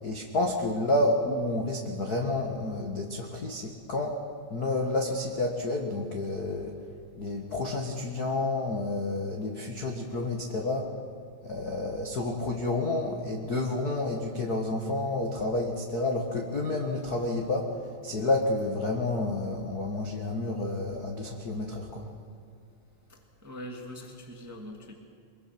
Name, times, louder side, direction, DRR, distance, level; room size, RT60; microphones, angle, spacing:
voice 1, 0.0-4.2 4.5-6.7 7.2-10.9 11.4-17.8 18.0-22.1, left 2 dB, 45° left, 1 dB, 1.2 m, -30 dB
voice 2, 23.1-24.9, left 1 dB, 5° right, 1 dB, 1.4 m, -43 dB
24.0 x 22.0 x 6.1 m, 2.4 s
omnidirectional pair, 4.2 m